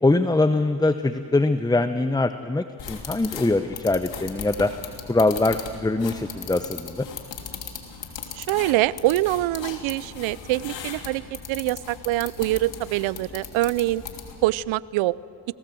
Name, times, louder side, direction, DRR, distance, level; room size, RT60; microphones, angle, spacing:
voice 1, 0.0-4.7 5.1-7.1, left 2 dB, 10° left, 11 dB, 0.7 m, -23 dB
sound 1, 2.8-14.5, left 6 dB, 70° left, 3.2 m, -38 dB
voice 2, 8.4-14.0 14.4-15.2, right 17 dB, 80° right, 21 dB, 0.6 m, -24 dB
28.5 x 18.5 x 7.7 m, 2.6 s
supercardioid pair, 70°, 47 cm